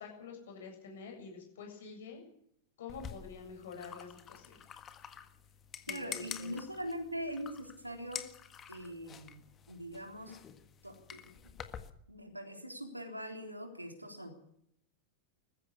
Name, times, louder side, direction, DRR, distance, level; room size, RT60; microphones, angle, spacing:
voice 1, 0.0-2.2 2.8-4.7 5.9-6.6, left 5 dB, 60° left, 2 dB, 7.9 m, -48 dB
sound 1, 2.9-11.9, left 8 dB, 25° left, 1.7 m, -48 dB
voice 2, 5.9-8.2 8.7-10.4 10.8-11.5 12.1-14.4, equal, 85° right, 4 dB, 3.6 m, -42 dB
20.5 x 15.0 x 8.4 m, 0.71 s
figure-of-eight pair, 90°, 0 cm